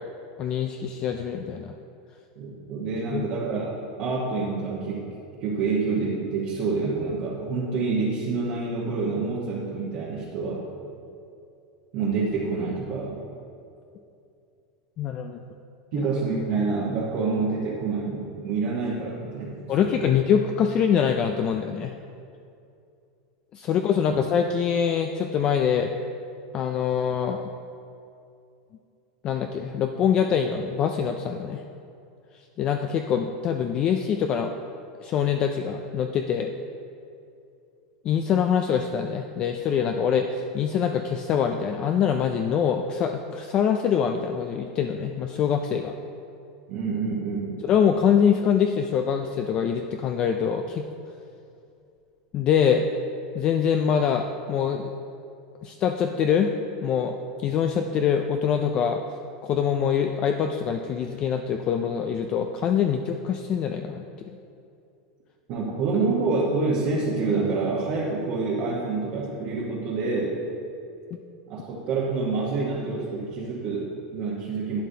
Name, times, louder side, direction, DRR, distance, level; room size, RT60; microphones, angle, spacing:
voice 1, 0.4-1.7 3.1-3.3 15.0-15.4 15.9-16.0 19.7-21.9 23.5-25.9 26.5-27.4 29.2-31.6 32.6-34.5 35.0-36.5 38.0-45.9 47.6-50.8 52.3-52.9 53.3-54.9 55.6-56.6 56.8-59.0 59.4-64.4 71.1-71.2, left 7 dB, 25° left, 5 dB, 0.3 m, -24 dB
voice 2, 2.4-5.1 5.4-10.7 11.9-13.2 15.9-20.1 46.7-47.6 65.5-70.4 71.5-74.8, right 4 dB, 40° right, -6 dB, 1.1 m, -27 dB
11.5 x 9.3 x 2.8 m, 2.6 s
supercardioid pair, 165°, 3 cm